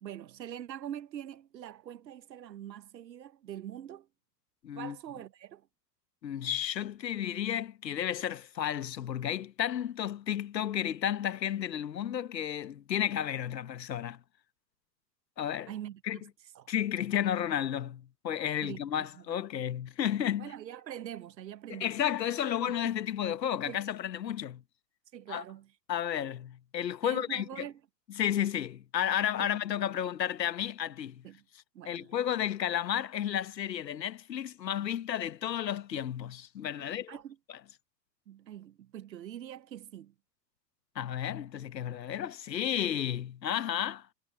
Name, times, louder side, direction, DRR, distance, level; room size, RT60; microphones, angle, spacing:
voice 1, 0.0-4.1 4.8-5.7 15.7-16.2 16.5-16.7 18.6-19.2 20.4-22.0 23.6-23.8 25.1-25.7 27.0-27.8 31.2-31.4 31.7-32.1 36.8-37.4 38.3-40.1, right 11 dB, 85° right, 1.1 m, -44 dB
voice 2, 4.6-5.0 6.2-14.2 15.4-15.7 16.0-16.2 16.7-20.5 21.7-24.6 25.3-25.4 25.9-27.7 28.2-31.3 31.8-37.2 40.9-44.1, left 10 dB, 85° left, 1.4 m, -32 dB
hypercardioid pair, 95°, 49 cm